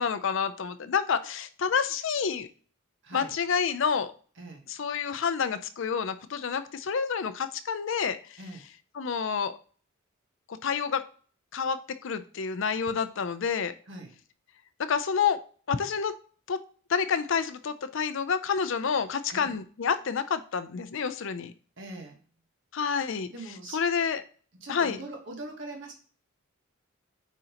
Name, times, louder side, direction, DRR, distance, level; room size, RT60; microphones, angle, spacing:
voice 1, 0.0-2.5 3.1-4.1 4.7-8.4 9.0-9.5 10.6-11.0 11.5-13.7 14.8-15.4 15.7-16.1 16.5-16.6 16.9-21.5 22.7-23.3 23.7-24.2 24.7-25.0, left 6 dB, 60° left, 12 dB, 0.5 m, -28 dB
voice 2, 3.0-3.4 4.4-4.6 8.4-8.6 13.9-14.1 19.3-19.6 21.8-22.2 23.3-23.8 24.6-25.9, right 2 dB, 55° right, 2 dB, 1.2 m, -42 dB
9.0 x 3.8 x 2.9 m, 0.43 s
head